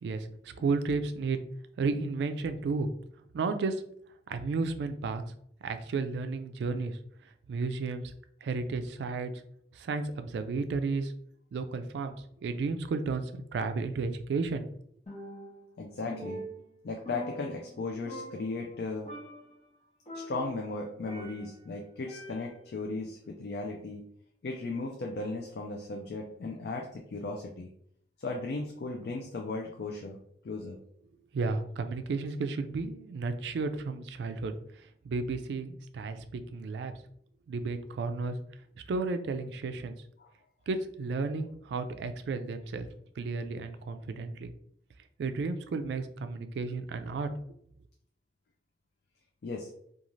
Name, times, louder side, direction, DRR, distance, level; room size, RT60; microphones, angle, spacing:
voice 1, 0.0-1.4 1.8-2.9 3.3-3.8 4.3-5.2 5.6-7.0 7.5-8.0 8.4-9.3 9.7-11.1 11.5-12.1 12.4-14.7 31.3-34.5 35.0-36.9 37.5-38.4 38.9-39.9 40.7-42.9 43.2-44.5 45.2-47.3, right 4 dB, 75° right, 9 dB, 0.3 m, -33 dB
Percussion, 15.1-15.7 16.1-17.8 18.1-18.8 19.1-19.6 20.1-21.6 22.1-22.7, equal, 35° left, 0.7 m, -43 dB
voice 2, 15.8-16.4 16.8-19.1 20.1-24.0 24.4-27.7 28.2-30.2 30.4-30.8 40.2-40.3 49.4-49.7, left 3 dB, 60° left, 1 dB, 0.4 m, -36 dB
2.5 x 2.4 x 3.0 m, 0.68 s
head